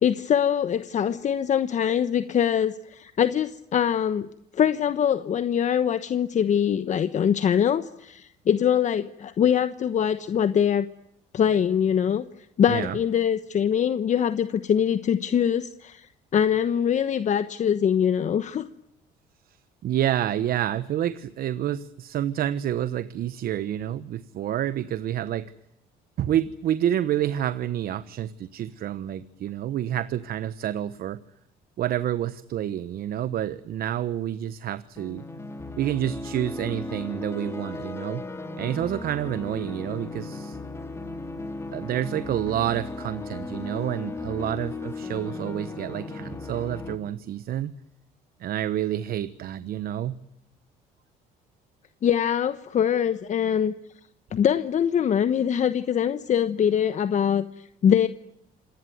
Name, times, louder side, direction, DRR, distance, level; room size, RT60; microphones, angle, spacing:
voice 1, 0.0-4.3 4.5-10.9 11.3-12.3 12.6-18.7 52.0-53.7 54.3-58.1, left 8 dB, 45° left, 12 dB, 1.2 m, -23 dB
voice 2, 19.8-25.5 26.2-31.2 31.8-35.2 35.8-38.2 38.6-40.6 41.7-47.7 48.4-50.2, right 11 dB, 60° right, 14 dB, 1.2 m, -28 dB
sound 1, 34.9-47.0, left 3 dB, 15° left, 3.5 m, -36 dB
27.0 x 19.5 x 9.3 m, 0.78 s
cardioid pair, 110°, 17 cm